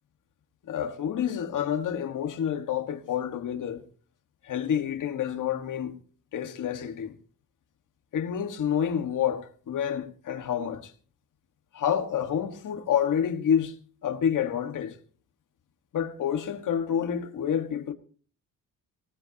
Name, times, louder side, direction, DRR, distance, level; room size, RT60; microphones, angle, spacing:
voice 1, 0.7-3.8 4.4-5.9 6.3-7.1 8.1-10.9 11.7-13.7 14.0-14.9 15.9-17.9, left 8 dB, 60° left, 1.7 m, -28 dB
18.5 x 18.5 x 2.9 m
wide cardioid pair, 180°, 35 cm